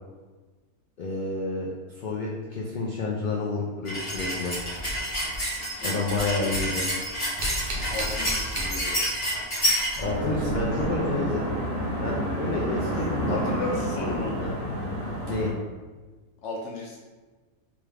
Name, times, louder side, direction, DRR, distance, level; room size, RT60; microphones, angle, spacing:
voice 1, 1.0-4.5 5.8-6.9 10.0-11.5 12.0-13.4 14.4-14.5 15.3-15.5, left 2 dB, 85° left, -4 dB, 0.4 m, -29 dB
sound 1, 3.8-10.0, equal, 25° left, 1.5 m, -29 dB
sound 2, 4.1-5.8 6.1-9.2 9.5-11.3 13.2-13.3 14.1-14.3, right 1 dB, 45° right, 0.7 m, -36 dB
voice 2, 5.6-6.5 7.7-9.1 10.2-11.0 13.3-14.3 16.4-17.0, left 2 dB, 60° left, -1 dB, 0.9 m, -35 dB
sound 3, 10.0-15.5, equal, 70° right, 1.6 m, -30 dB
3.5 x 3.0 x 3.2 m, 1.3 s
omnidirectional pair, 1.5 m